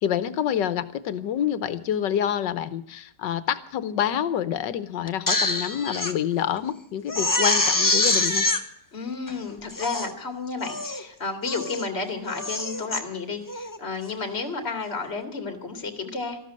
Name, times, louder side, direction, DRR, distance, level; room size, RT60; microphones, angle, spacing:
voice 1, 0.0-8.5, left 9 dB, 90° left, 15 dB, 1.6 m, -27 dB
Crying sobbing, 5.1-6.1 6.6-6.7 7.1-8.6 9.3-9.4 9.7-10.1 10.6-11.0 11.4-11.9 12.3-13.0 13.5-13.8, left 2 dB, 15° left, 0.9 m, -25 dB
voice 2, 8.9-16.4, left 4 dB, 35° left, 7 dB, 2.5 m, -32 dB
14.0 x 13.0 x 7.6 m, 0.64 s
omnidirectional pair, 1.9 m